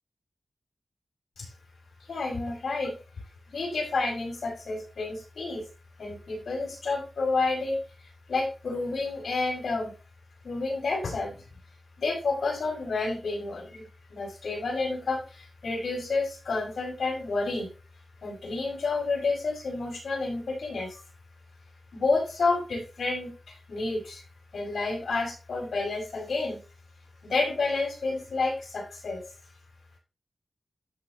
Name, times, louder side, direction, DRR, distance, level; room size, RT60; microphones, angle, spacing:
voice 1, 2.1-2.9 3.5-5.6 6.0-7.8 8.3-9.9 10.4-11.4 12.0-17.7 18.2-21.0 21.9-24.2 24.5-26.6 27.2-29.2, left 3 dB, 85° left, 0 dB, 5.5 m, -30 dB
13.0 x 5.8 x 3.0 m, 0.31 s
wide cardioid pair, 125°, 0 cm